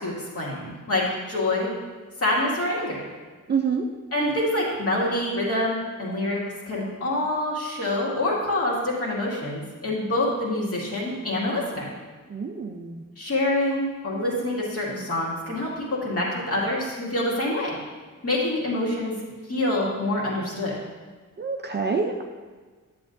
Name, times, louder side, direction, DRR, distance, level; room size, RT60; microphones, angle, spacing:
voice 1, 0.0-1.7 2.2-3.0 4.1-6.4 6.7-11.8 13.2-17.8 18.2-19.1 19.5-20.7, left 1 dB, 45° left, -5 dB, 2.1 m, -26 dB
voice 2, 3.5-3.9 12.3-13.0 21.4-22.2, right 5 dB, 35° right, 3 dB, 0.5 m, -27 dB
10.5 x 7.4 x 2.6 m, 1.4 s
wide cardioid pair, 160°, 33 cm